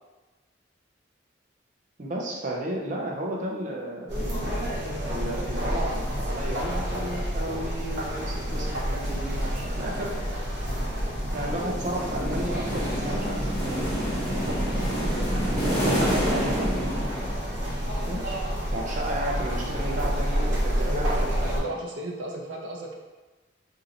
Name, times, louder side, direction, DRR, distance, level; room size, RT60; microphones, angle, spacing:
voice 1, 2.0-4.2 4.5-4.7 5.1-10.1 11.3-13.4 13.6-13.9 16.3-16.7 18.1-18.4 18.7-21.6, right 1 dB, 45° right, -2 dB, 0.6 m, -33 dB
sound 1, 4.1-21.6, equal, 65° right, 1.0 m, -29 dB
sound 2, 11.2-17.7, equal, 10° left, 1.0 m, -29 dB
voice 2, 15.7-16.6 20.8-23.0, right 1 dB, 85° right, 0 dB, 0.6 m, -34 dB
2.9 x 2.7 x 3.8 m, 1.2 s
head